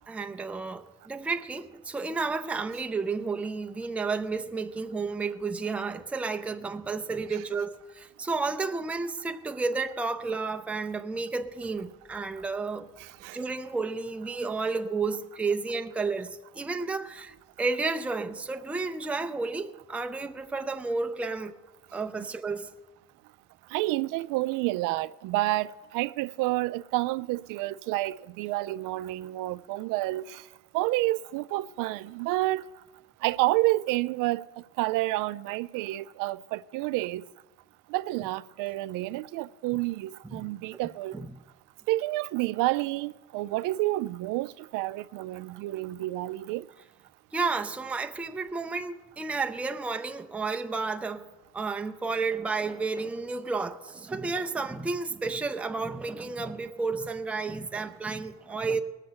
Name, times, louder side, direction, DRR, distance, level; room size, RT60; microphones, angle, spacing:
voice 1, 0.1-12.9 13.3-21.6 21.9-22.7 40.2-40.5 41.1-41.3 47.3-51.3 51.5-58.8, right 4 dB, 5° right, 0.4 m, -32 dB
voice 2, 13.0-13.4 22.2-22.3 23.7-30.4 30.7-32.6 33.2-34.4 34.8-37.2 37.9-41.2 41.9-46.7, right 18 dB, 70° right, 0.5 m, -29 dB
19.0 x 6.6 x 7.9 m
cardioid pair, 145°, 34 cm